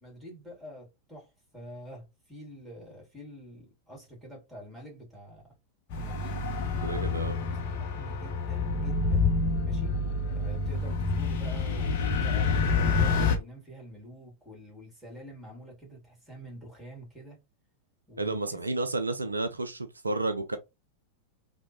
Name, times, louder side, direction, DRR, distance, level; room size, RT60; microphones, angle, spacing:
voice 1, 0.0-5.5 5.9-6.5 7.2-7.4 7.8-9.3 9.6-10.0 10.3-17.4 18.1-18.6, equal, ahead, 1.7 m, -47 dB
sound 1, 5.9-13.4, left 4 dB, 45° left, 0.6 m, -28 dB
voice 2, 6.8-7.4 18.2-20.6, right 2 dB, 80° right, 0.3 m, -31 dB
3.0 x 2.1 x 2.7 m
figure-of-eight pair, 90°, 0 cm